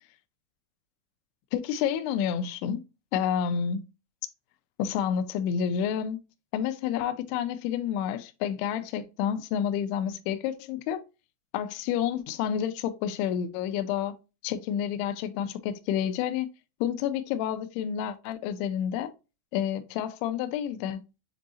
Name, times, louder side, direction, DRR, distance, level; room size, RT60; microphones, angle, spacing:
voice 1, 1.5-2.8 3.1-3.8 4.8-6.2 6.5-11.0 11.5-14.2 14.4-16.5 16.8-19.1 19.5-21.0, left 9 dB, 85° left, 2.3 m, -29 dB
7.2 x 2.7 x 2.7 m
omnidirectional pair, 5.2 m